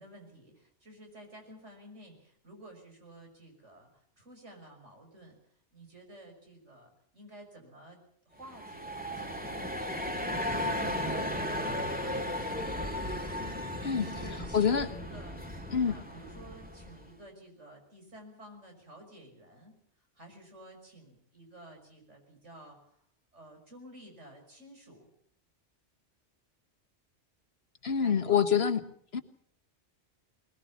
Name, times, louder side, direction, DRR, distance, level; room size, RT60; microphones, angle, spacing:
voice 1, 0.0-8.0 8.3-9.6 10.3-13.0 14.0-14.6 15.0-15.4 15.8-23.0 23.3-25.1 27.9-28.6, right 1 dB, 85° right, 3 dB, 6.4 m, -52 dB
sound 1, 8.4-17.1, left 1 dB, 5° right, 2.0 m, -35 dB
voice 2, 14.5-14.9 15.7-15.9 27.8-28.8 29.1-29.2, left 7 dB, 60° left, 9 dB, 1.6 m, -26 dB
21.0 x 20.5 x 7.2 m, 0.63 s
omnidirectional pair, 1.2 m